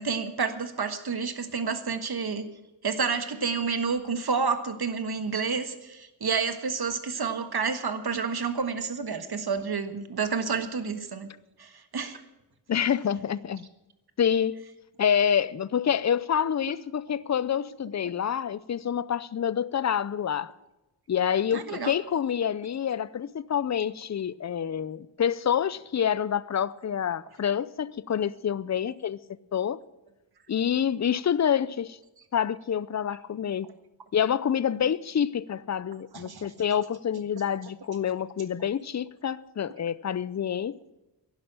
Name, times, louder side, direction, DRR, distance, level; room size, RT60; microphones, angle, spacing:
voice 1, 0.0-2.5 2.8-11.3 11.6-12.2 21.5-21.9 36.1-36.5, right 5 dB, 55° right, 1.5 m, -29 dB
voice 2, 12.7-13.6 14.2-14.6 15.0-20.5 21.1-29.2 29.5-29.8 30.5-32.0 32.3-33.7 34.1-40.8, left 8 dB, 40° left, 0.5 m, -27 dB
11.5 x 11.0 x 8.9 m
wide cardioid pair, 100°, 45 cm